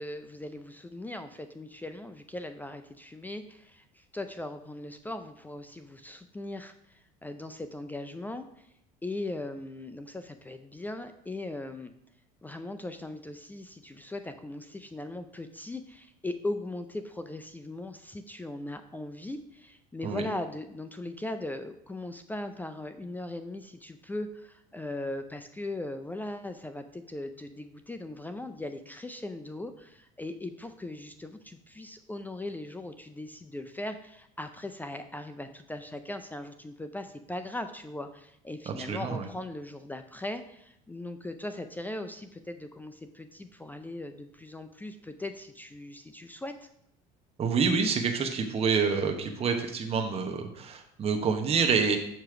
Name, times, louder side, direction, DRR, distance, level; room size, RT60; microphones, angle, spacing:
voice 1, 0.0-8.7 9.0-11.9 12.4-46.7, left 1 dB, 10° left, 7 dB, 0.4 m, -39 dB
voice 2, 38.7-39.3 47.4-52.0, right 5 dB, 35° right, 4 dB, 0.9 m, -27 dB
6.6 x 3.0 x 5.8 m, 0.74 s
supercardioid pair, 95°, 18 cm